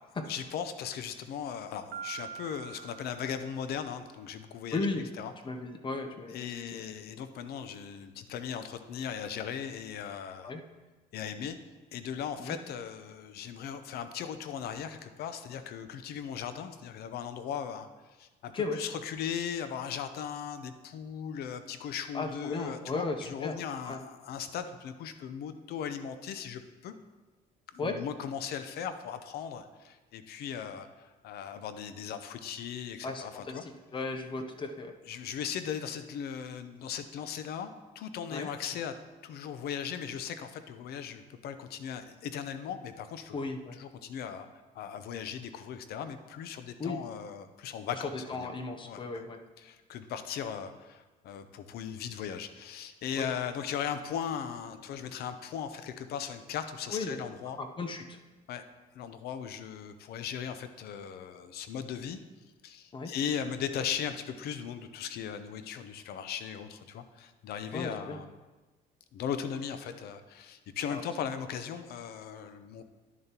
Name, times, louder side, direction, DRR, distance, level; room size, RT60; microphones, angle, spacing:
voice 1, 0.3-4.9 5.2-5.3 6.3-10.5 11.1-11.6 11.9-17.9 18.2-26.9 27.7-33.6 35.1-38.9 39.2-43.4 43.8-48.5 48.8-49.2 49.6-57.6 58.5-58.6 58.9-62.2 62.6-68.3 69.1-72.8, left 8 dB, 70° left, 10 dB, 0.7 m, -38 dB
Piano, 1.9-3.8, right 8 dB, 75° right, 1.2 m, -44 dB
voice 2, 4.7-5.1 5.4-6.8 10.4-10.6 12.4-12.6 18.5-18.8 22.1-23.6 23.9-24.0 27.8-28.0 33.0-34.9 38.3-38.5 43.3-43.8 46.8-47.0 47.9-49.4 53.1-53.3 56.9-57.3 57.6-58.2 62.9-63.1 67.7-68.2 70.9-71.0, left 3 dB, 30° left, 6 dB, 0.7 m, -35 dB
10.5 x 6.7 x 2.9 m, 1.2 s
cardioid pair, 110°, 17 cm